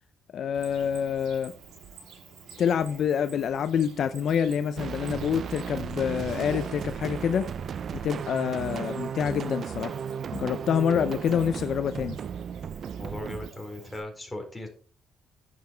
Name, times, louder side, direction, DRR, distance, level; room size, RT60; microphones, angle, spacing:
voice 1, 0.3-1.5 2.6-7.5 8.0-10.0 10.3-12.2, left 8 dB, 65° left, 0.6 m, -27 dB
Cricket, 0.5-14.0, right 5 dB, 85° right, 5.2 m, -48 dB
sound 1, 4.8-13.5, right 7 dB, 55° right, 0.4 m, -35 dB
voice 2, 12.9-14.7, left 1 dB, 10° left, 4.2 m, -38 dB
10.5 x 6.9 x 4.6 m
cardioid pair, 90°, 0 cm